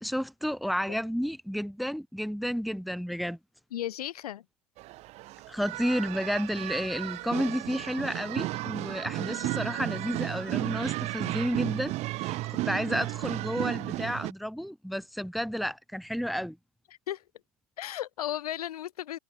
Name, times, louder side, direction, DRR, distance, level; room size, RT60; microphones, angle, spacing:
voice 1, 0.0-3.4 5.5-16.6, equal, ahead, 1.8 m, -31 dB
voice 2, 3.7-4.4 17.1-17.2 17.8-19.2, left 12 dB, 85° left, 2.1 m, -35 dB
sound 1, 4.8-14.3, right 19 dB, 35° right, 2.6 m, -34 dB
supercardioid pair, 145°, 19 cm